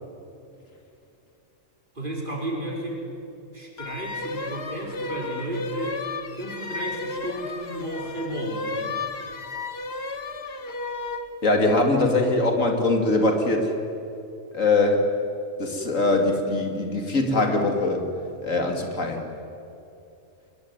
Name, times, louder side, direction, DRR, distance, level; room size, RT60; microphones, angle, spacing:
voice 1, 1.9-3.0 3.5-6.0 6.3-9.0, right 1 dB, 40° right, -1 dB, 5.0 m, -33 dB
sound 1, 3.8-11.3, left 3 dB, 55° left, 1.6 m, -33 dB
voice 2, 11.4-13.7 14.5-15.1 15.6-18.0 18.4-19.2, left 2 dB, 90° left, 3 dB, 3.1 m, -22 dB
24.0 x 21.5 x 9.7 m, 2.8 s
omnidirectional pair, 1.3 m